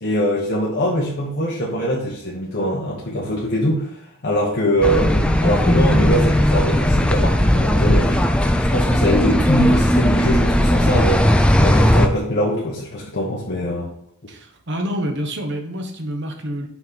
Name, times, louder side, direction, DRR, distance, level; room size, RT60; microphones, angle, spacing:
voice 1, 0.0-13.9, equal, 50° left, -5 dB, 1.1 m, -23 dB
sound 1, 4.8-12.1, equal, 5° left, 0.3 m, -17 dB
voice 2, 14.3-16.7, equal, 50° right, 4 dB, 1.0 m, -27 dB
5.9 x 4.4 x 4.0 m, 0.71 s
head